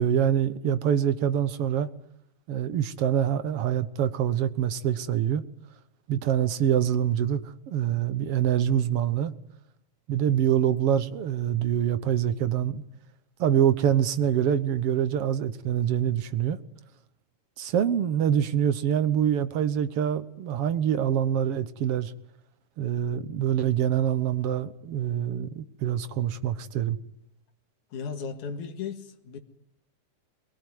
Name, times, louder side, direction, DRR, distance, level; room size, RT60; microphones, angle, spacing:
voice 1, 0.0-1.9 2.5-5.4 6.1-7.4 7.7-9.3 10.1-12.8 13.4-16.6 17.6-22.1 22.8-27.0, right 9 dB, 60° right, 1.8 m, -25 dB
voice 2, 27.9-29.4, left 6 dB, 75° left, 3.2 m, -35 dB
23.0 x 21.0 x 9.5 m
omnidirectional pair, 3.5 m